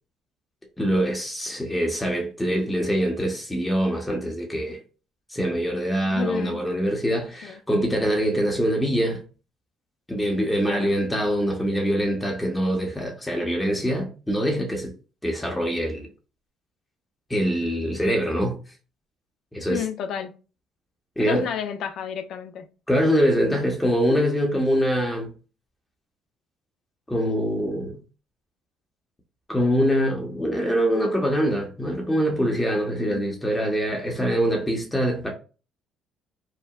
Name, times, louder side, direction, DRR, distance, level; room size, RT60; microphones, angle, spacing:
voice 1, 0.8-4.8 5.3-9.2 10.1-14.9 15.2-16.1 17.3-18.6 19.5-19.8 21.2-21.4 22.9-25.3 27.1-28.0 29.5-35.3, equal, 10° left, 0.8 m, -24 dB
voice 2, 6.0-6.6 7.4-7.6 10.7-10.9 19.7-20.4 21.2-22.7 33.0-33.2, left 8 dB, 65° left, 0.4 m, -31 dB
2.8 x 2.0 x 2.3 m
hypercardioid pair, 60°, 0 cm